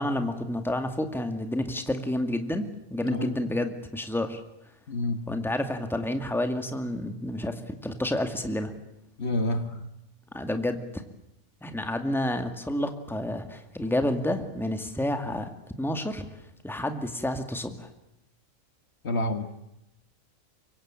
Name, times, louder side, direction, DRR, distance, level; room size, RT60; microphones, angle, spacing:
voice 1, 0.0-4.4 5.3-8.7 10.3-11.0 11.6-15.5 15.8-16.3 16.6-17.9, left 1 dB, ahead, 6 dB, 2.1 m, -29 dB
voice 2, 4.9-5.2 9.2-9.8 19.0-19.6, left 1 dB, 50° left, 8 dB, 1.9 m, -28 dB
24.0 x 24.0 x 9.0 m, 0.85 s
omnidirectional pair, 1.4 m